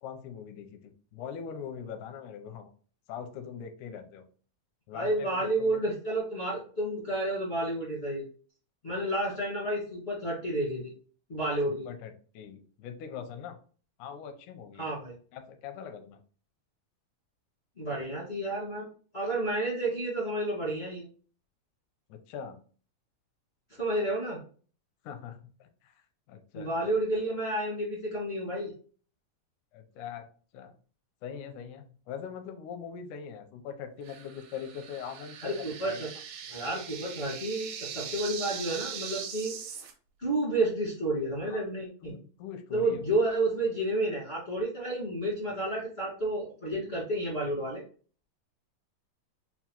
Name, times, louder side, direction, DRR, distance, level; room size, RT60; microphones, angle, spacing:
voice 1, 0.0-2.7 3.1-4.2 4.9-5.8 11.7-13.6 14.0-14.9 15.3-16.2 22.1-22.6 25.0-26.0 26.3-26.9 29.7-30.3 30.5-30.7 31.2-36.2 41.5-41.6 42.0-43.0, left 7 dB, 80° left, 6 dB, 1.8 m, -42 dB
voice 2, 4.9-8.2 8.8-10.9 11.3-11.9 14.8-15.1 17.8-18.8 19.1-21.1 23.8-24.4 26.5-28.7 35.4-36.1 36.5-39.5 40.2-42.1 42.7-47.8, right 1 dB, 55° left, -6 dB, 0.6 m, -30 dB
sound 1, 34.0-39.9, right 7 dB, 80° right, 2.4 m, -41 dB
5.6 x 2.3 x 2.8 m, 0.41 s
omnidirectional pair, 3.9 m